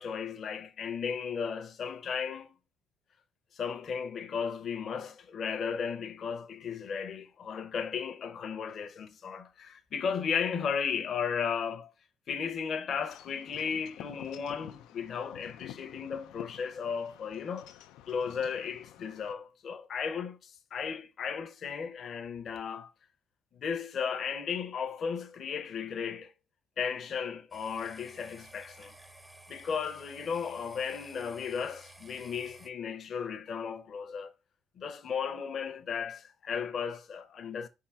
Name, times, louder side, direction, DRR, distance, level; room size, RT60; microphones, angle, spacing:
voice 1, 0.0-2.5 3.5-11.9 12.3-17.7 18.1-22.9 23.5-26.3 26.8-28.9 29.5-34.3 34.8-37.7, left 6 dB, 35° left, 0.7 m, -35 dB
Wind chime / Wind, 13.0-19.3, left 12 dB, 90° left, 0.5 m, -50 dB
sound 1, 27.5-32.7, right 1 dB, 5° right, 0.6 m, -53 dB
5.5 x 3.6 x 5.6 m
cardioid pair, 175°, 0 cm